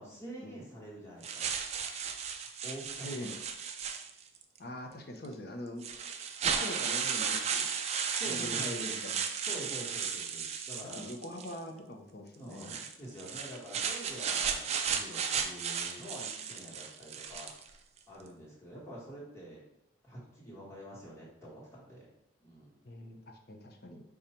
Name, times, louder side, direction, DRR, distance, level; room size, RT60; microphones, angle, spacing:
voice 1, 0.0-1.5 2.6-3.1 8.2-8.9 9.4-11.0 12.4-17.5 18.1-19.6 20.0-22.1 22.4-22.8, equal, 15° left, -5 dB, 1.2 m, -46 dB
Plastic Bag, 1.2-4.4 5.2-5.3 5.8-11.6 12.5-17.7, right 6 dB, 30° right, 0.3 m, -35 dB
voice 2, 3.0-3.3 4.6-5.8 6.4-7.7 8.2-9.2 10.9-12.7 22.8-24.0, left 1 dB, 50° left, 4 dB, 0.6 m, -43 dB
5.1 x 2.3 x 4.2 m, 0.80 s
head